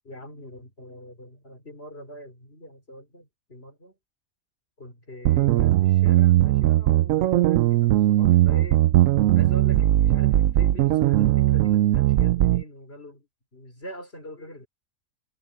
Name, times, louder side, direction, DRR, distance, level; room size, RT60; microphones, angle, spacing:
voice 1, 0.0-3.9 4.8-8.8 9.2-13.3 13.5-14.7, equal, 50° left, 4.1 m, -43 dB
sound 1, 5.3-12.6, right 14 dB, 80° right, 1.0 m, -19 dB
omnidirectional pair, 1.4 m